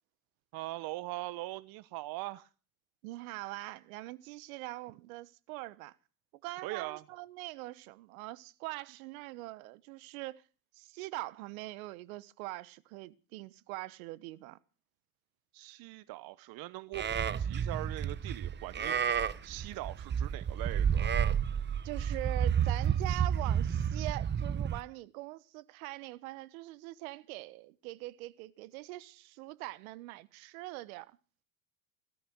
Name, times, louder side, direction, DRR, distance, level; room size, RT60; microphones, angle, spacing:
voice 1, 0.5-2.5 6.6-7.0 15.5-21.1, right 19 dB, 55° right, 0.8 m, -41 dB
voice 2, 3.0-5.9 6.4-10.4 10.7-14.6 21.8-31.2, right 19 dB, 70° right, 1.2 m, -43 dB
Livestock farm animals working animals, 16.9-24.8, right 8 dB, 25° right, 0.9 m, -31 dB
18.0 x 13.0 x 6.2 m
hypercardioid pair, 85°, 43 cm